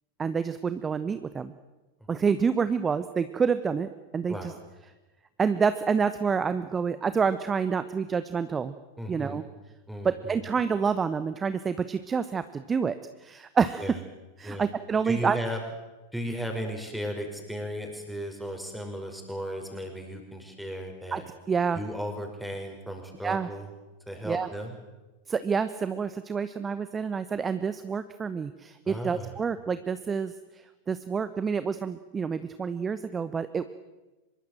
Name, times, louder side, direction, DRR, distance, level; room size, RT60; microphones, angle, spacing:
voice 1, 0.2-1.5 2.1-4.5 5.4-8.7 9.1-9.4 10.0-13.9 14.4-15.4 21.1-21.2 21.5-21.8 23.2-23.5 24.2-24.5 25.3-33.6, right 6 dB, 20° right, 13 dB, 1.0 m, -28 dB
voice 2, 9.0-9.4 9.9-10.5 13.8-14.0 14.4-14.7 15.0-15.6 16.1-21.2 21.7-23.7 24.1-24.8 28.9-29.4, equal, ahead, 4 dB, 5.6 m, -35 dB
25.0 x 22.0 x 7.5 m, 1.1 s
figure-of-eight pair, 90°, 0 cm